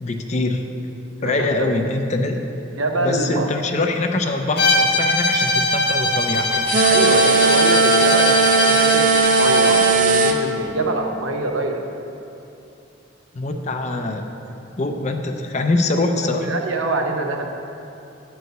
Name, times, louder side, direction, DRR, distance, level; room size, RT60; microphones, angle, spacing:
voice 1, 0.0-0.7 1.2-2.4 3.0-6.9 13.3-14.3 14.8-16.5, left 2 dB, 35° left, 4 dB, 0.5 m, -23 dB
voice 2, 1.2-1.8 2.8-3.5 6.8-11.8 16.4-17.5, right 2 dB, 90° right, 3 dB, 0.9 m, -25 dB
Bowed string instrument, 4.6-10.0, left 2 dB, 55° left, 1.1 m, -21 dB
sound 1, 6.7-10.4, right 3 dB, 45° right, 0.6 m, -17 dB
9.1 x 4.7 x 6.5 m, 2.9 s
head